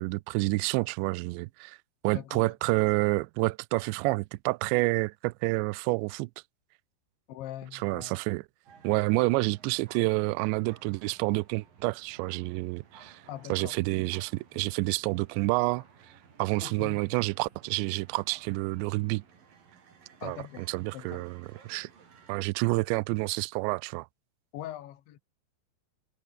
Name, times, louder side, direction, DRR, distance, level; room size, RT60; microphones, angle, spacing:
voice 1, 0.0-1.8 2.0-6.3 7.7-8.4 8.8-13.2 13.5-15.8 16.4-19.2 20.2-21.9 22.3-24.1, right 24 dB, 85° right, 2.6 m, -29 dB
voice 2, 2.1-2.5 7.3-8.2 13.3-13.8 16.6-17.1 20.2-21.2 24.5-25.2, left 12 dB, 70° left, 4.2 m, -42 dB
sound 1, 8.7-22.3, right 6 dB, 50° right, 5.3 m, -57 dB
omnidirectional pair, 5.5 m